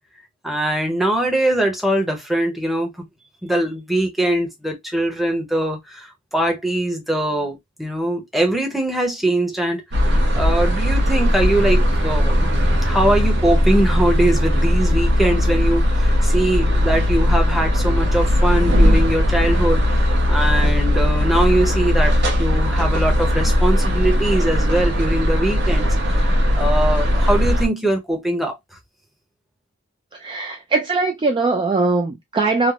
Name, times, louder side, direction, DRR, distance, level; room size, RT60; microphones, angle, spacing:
voice 1, 0.4-3.0 3.4-12.5 12.8-28.5, right 1 dB, ahead, 0.7 m, -22 dB
sound 1, 9.9-27.7, equal, 55° right, 0.8 m, -18 dB
voice 2, 30.1-32.7, right 3 dB, 25° right, 0.3 m, -21 dB
3.2 x 2.0 x 2.3 m
head